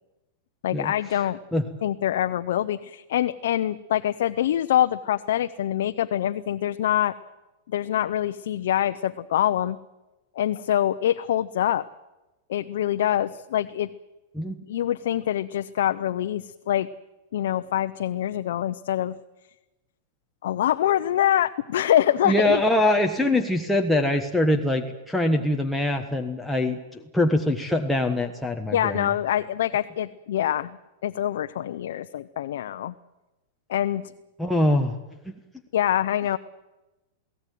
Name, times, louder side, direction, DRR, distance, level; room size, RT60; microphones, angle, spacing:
voice 1, 0.6-1.4 1.8-7.1 7.7-9.8 10.4-11.8 12.5-13.9 14.7-16.9 17.3-19.1 20.4-22.6 28.7-30.8 31.0-32.9 33.7-34.0 35.7-36.4, left 11 dB, 75° left, 9 dB, 0.7 m, -25 dB
voice 2, 22.2-29.1 34.4-35.0, left 1 dB, ahead, 1 dB, 1.3 m, -23 dB
22.5 x 17.0 x 9.3 m, 1.1 s
supercardioid pair, 145°, 0 cm